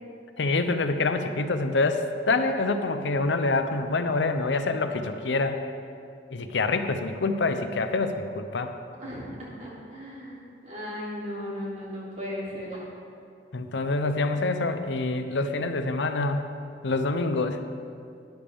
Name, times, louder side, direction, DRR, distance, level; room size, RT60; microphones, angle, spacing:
voice 1, 0.4-5.6 6.3-8.8 13.5-16.5 16.8-17.6, left 3 dB, 85° left, 8 dB, 0.7 m, -26 dB
voice 2, 9.0-12.8, equal, 40° right, -7 dB, 3.1 m, -36 dB
12.0 x 10.5 x 3.5 m, 2.3 s
head